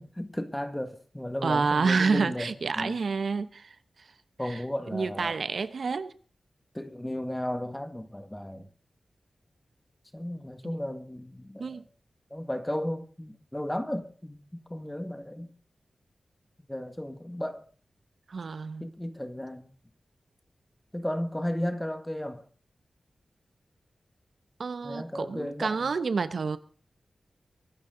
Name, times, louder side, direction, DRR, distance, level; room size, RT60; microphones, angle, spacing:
voice 1, 0.0-3.0 4.4-5.4 6.7-8.7 10.1-11.8 12.3-15.5 16.7-17.6 18.8-19.7 20.9-22.5 24.8-25.9, left 1 dB, 10° left, 1.8 m, -34 dB
voice 2, 1.4-3.7 4.4-4.6 4.9-6.1 11.6-11.8 18.3-18.8 24.6-26.6, right 4 dB, 65° right, 1.0 m, -28 dB
24.0 x 12.5 x 3.9 m
wide cardioid pair, 105°, 0 cm